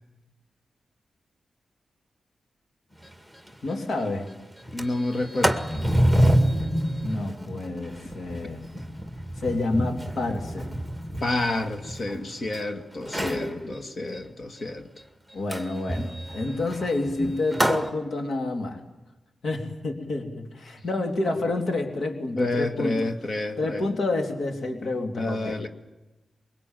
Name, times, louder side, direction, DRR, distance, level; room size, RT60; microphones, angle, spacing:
Sliding door, 3.0-3.1 3.5-3.6 3.9-4.2 4.6-12.6 13.0-13.5 15.5-17.9, equal, 5° left, 2.1 m, -27 dB
voice 1, 3.6-4.3 7.0-8.6 9.4-10.7 13.2-14.2 15.3-18.8 19.4-23.1 23.6-25.6, left 2 dB, 70° left, 5 dB, 3.4 m, -29 dB
voice 2, 4.7-5.6 11.2-14.9 22.4-23.8 25.1-25.7, left 2 dB, 50° left, 6 dB, 2.0 m, -29 dB
24.0 x 23.0 x 9.2 m, 1.1 s
wide cardioid pair, 125°, 0 cm